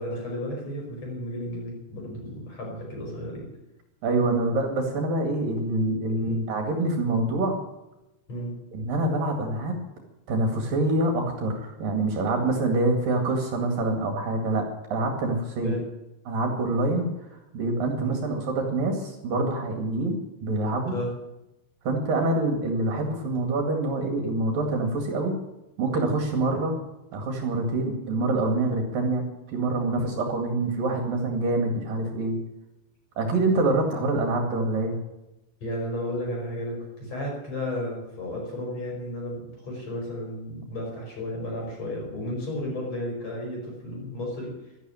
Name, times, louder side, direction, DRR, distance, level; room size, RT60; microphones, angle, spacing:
voice 1, 0.0-3.5 6.2-6.4 8.3-8.6 12.7-12.9 15.6-15.8 18.0-18.2 20.9-21.1 30.0-30.2 35.6-44.6, left 1 dB, 40° left, -1 dB, 6.3 m, -33 dB
voice 2, 4.0-7.6 8.7-9.7 10.3-14.6 14.9-15.8 16.3-17.1 17.5-20.2 20.4-20.9 21.9-25.3 25.8-26.8 27.1-29.2 29.5-32.4 33.2-34.9, right 2 dB, 60° right, 3 dB, 3.6 m, -25 dB
13.0 x 12.0 x 9.0 m, 0.95 s
omnidirectional pair, 4.9 m